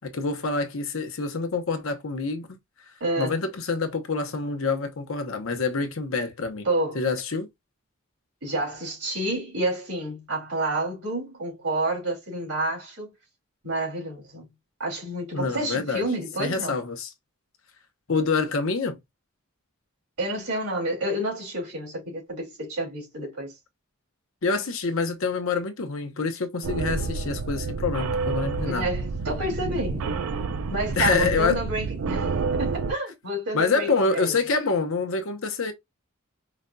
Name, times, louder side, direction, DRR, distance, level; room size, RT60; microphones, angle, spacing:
voice 1, 0.0-2.6 3.2-6.7 6.9-7.5 15.3-16.0 16.4-17.1 18.1-19.0 24.4-28.9 31.0-31.6 33.5-35.7, left 4 dB, 65° left, 0.7 m, -26 dB
voice 2, 3.0-3.4 6.6-7.0 8.4-13.1 13.6-14.5 14.8-16.8 20.2-23.5 28.6-30.2 30.7-34.4, right 1 dB, 85° right, 2.6 m, -29 dB
sound 1, 26.6-32.9, right 4 dB, 70° right, 0.4 m, -29 dB
5.0 x 2.5 x 2.2 m
head